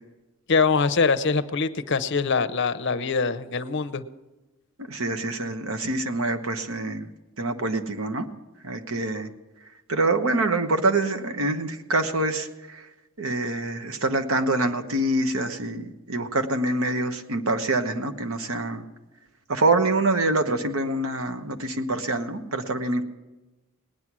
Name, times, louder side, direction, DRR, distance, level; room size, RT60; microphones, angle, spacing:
voice 1, 0.5-4.0, left 4 dB, 60° left, 13 dB, 0.7 m, -23 dB
voice 2, 4.9-7.1 7.4-8.3 8.6-9.3 9.9-12.5 13.2-18.8 19.5-23.0, right 2 dB, 85° right, 8 dB, 1.1 m, -25 dB
18.5 x 9.8 x 6.1 m, 1.1 s
head